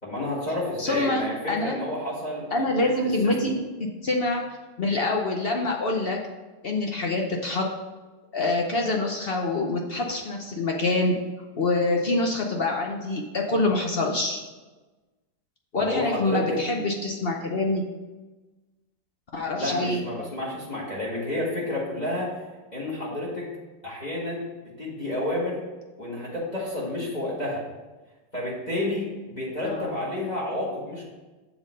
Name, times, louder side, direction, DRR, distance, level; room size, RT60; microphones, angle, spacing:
voice 1, 0.0-3.4 15.7-16.6 19.6-22.4 22.7-23.5 23.8-25.6 26.0-27.6 28.3-31.1, left 1 dB, 25° left, -5 dB, 1.8 m, -30 dB
voice 2, 0.8-1.8 2.5-6.2 6.6-7.7 8.3-11.2 11.6-14.4 15.7-17.8 19.3-20.0 29.7-29.9, left 2 dB, 55° left, 1 dB, 0.6 m, -26 dB
7.3 x 4.0 x 6.4 m, 1.2 s
omnidirectional pair, 1.9 m